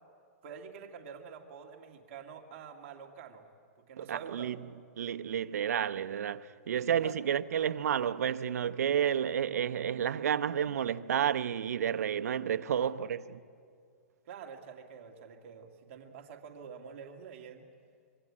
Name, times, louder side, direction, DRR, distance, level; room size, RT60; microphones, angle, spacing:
voice 1, 0.4-3.5 3.9-4.5 6.8-7.3 12.7-12.9 14.2-17.6, right 6 dB, 55° right, 2.3 m, -47 dB
voice 2, 4.1-4.6 5.0-13.4, right 9 dB, 80° right, 0.9 m, -31 dB
26.0 x 24.5 x 8.7 m
hypercardioid pair, 140°, 8 cm